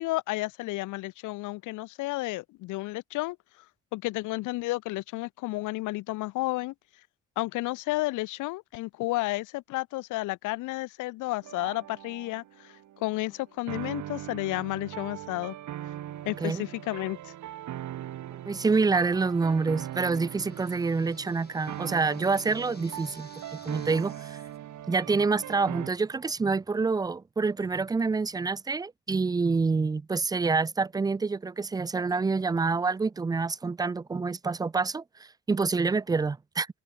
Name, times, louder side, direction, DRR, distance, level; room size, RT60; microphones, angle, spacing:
voice 1, 0.0-3.4 3.9-6.7 7.4-12.4 13.0-15.5 16.3-17.2, left 20 dB, 80° left, 0.5 m, -31 dB
sound 1, 11.4-25.9, right 12 dB, 70° right, 2.0 m, -40 dB
voice 2, 18.5-23.3 23.7-24.4 24.9-36.7, right 4 dB, 15° right, 0.3 m, -27 dB
sound 2, 18.7-24.6, left 5 dB, 30° left, 1.8 m, -58 dB
cardioid pair, 90°, 30 cm